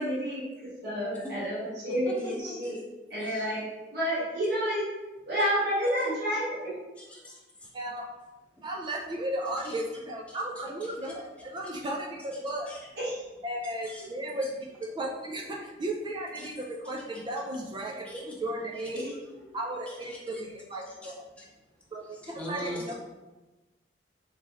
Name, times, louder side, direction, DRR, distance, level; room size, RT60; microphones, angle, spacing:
voice 1, 0.0-2.8 3.1-4.9 5.3-6.8 13.0-13.2 18.9-19.1, equal, 65° right, -10 dB, 1.2 m, -30 dB
voice 2, 2.1-2.7 3.2-3.5 7.0-7.7 9.6-9.8 10.3-10.4 11.0-11.1 12.7-12.9 13.9-14.1 16.4-16.5 17.1-17.2 18.0-18.4 18.7-19.2 19.4-19.6 19.9-20.4 20.9-21.4 22.1-22.9, left 1 dB, 5° left, -5 dB, 0.8 m, -42 dB
voice 3, 7.7-8.1 8.6-12.7 13.4-19.1 19.5-21.2 21.9-22.9, right 1 dB, 25° right, -1 dB, 0.4 m, -35 dB
3.0 x 3.0 x 3.5 m, 1.1 s
head